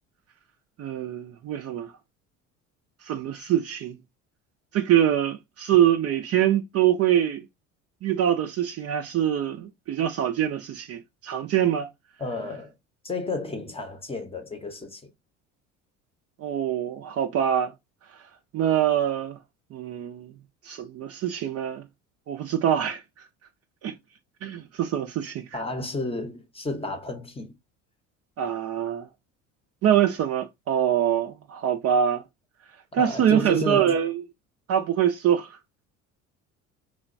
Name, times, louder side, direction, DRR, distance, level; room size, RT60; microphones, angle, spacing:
voice 1, 0.8-1.9 3.0-4.0 4.7-7.5 8.0-11.9 16.4-17.7 18.5-19.4 19.7-20.3 20.6-21.8 22.3-23.0 23.8-23.9 24.4-25.6 28.4-29.1 29.8-32.2 32.9-34.2 34.7-35.6, right 10 dB, 40° right, 0.4 m, -24 dB
voice 2, 12.2-12.7 13.0-15.1 25.5-27.6 32.9-34.0, left 2 dB, 15° left, 0.7 m, -32 dB
3.0 x 2.1 x 2.5 m
hypercardioid pair, 65°, 38 cm